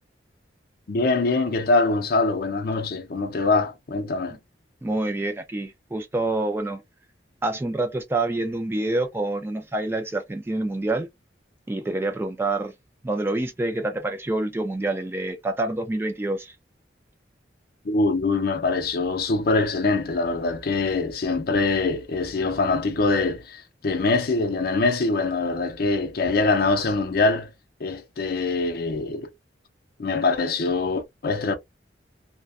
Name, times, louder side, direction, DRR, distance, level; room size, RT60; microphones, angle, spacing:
voice 1, 0.9-4.4 17.8-27.5 27.8-29.3 30.0-31.6, left 3 dB, 55° left, 0.5 m, -23 dB
voice 2, 4.8-6.8 7.4-11.1 11.7-12.7 13.0-16.6, right 2 dB, 15° right, 0.3 m, -27 dB
2.4 x 2.1 x 2.3 m
head